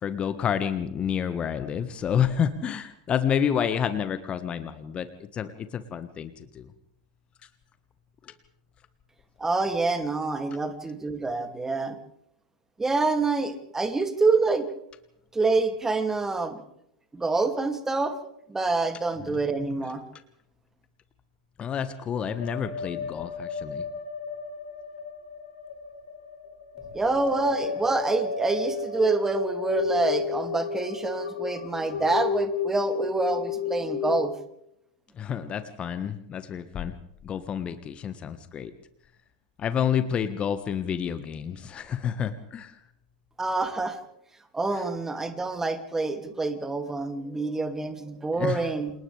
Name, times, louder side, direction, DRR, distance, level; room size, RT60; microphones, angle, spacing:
voice 1, 0.0-6.7 8.2-8.3 19.2-19.4 21.6-23.8 35.1-36.9 37.2-38.7 39.6-42.8 44.7-44.8 48.3-48.6, left 8 dB, 25° left, 11 dB, 1.5 m, -29 dB
voice 2, 9.4-12.0 12.8-14.7 15.3-16.6 17.1-18.1 18.5-20.0 26.9-34.3 43.4-44.0 44.5-48.9, right 3 dB, 10° right, 7 dB, 2.6 m, -26 dB
sound 1, 22.4-34.2, left 6 dB, 65° left, 5.3 m, -33 dB
29.5 x 28.0 x 3.5 m, 0.76 s
figure-of-eight pair, 90°, 4 cm